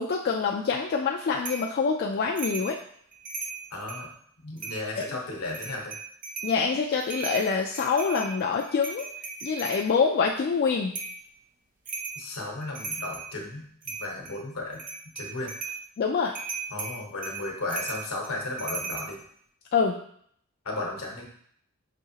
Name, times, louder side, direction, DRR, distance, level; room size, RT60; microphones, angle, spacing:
voice 1, 0.0-2.8 5.0-5.1 6.4-9.1 9.4-10.9 16.0-16.3 19.7-20.0, left 5 dB, 45° left, 0 dB, 0.3 m, -25 dB
sound 1, 1.4-1.7 2.4-2.7 3.1-4.1 4.6-5.1 5.5-6.6 6.9-9.8 10.9-11.2 11.9-12.2 12.6-13.3 13.8-14.4 14.7-15.8 16.3-19.1, right 4 dB, 40° right, 0.6 m, -36 dB
voice 2, 3.7-4.1 4.4-6.0 12.2-14.8 15.1-15.5 16.7-19.2 20.6-21.3, left 2 dB, 75° left, 0 dB, 1.0 m, -34 dB
5.9 x 2.8 x 2.8 m, 0.64 s
head